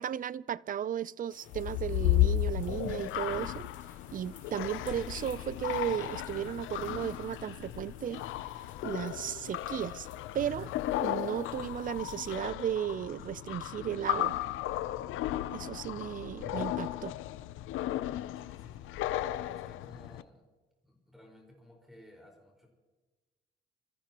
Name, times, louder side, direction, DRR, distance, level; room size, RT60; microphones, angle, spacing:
voice 1, 0.0-3.7 4.1-8.2 8.8-10.1 10.3-10.7 11.0-14.3 15.5-17.1, right 9 dB, 45° right, 0.4 m, -35 dB
sound 1, 1.3-12.4, left 5 dB, 40° left, 4.0 m, -59 dB
sound 2, 1.5-20.2, left 14 dB, 85° left, 0.5 m, -34 dB
voice 2, 18.3-19.0 19.3-20.5 20.8-22.7, left 1 dB, ahead, 4.6 m, -56 dB
26.0 x 14.0 x 2.9 m
cardioid pair, 90°, 20 cm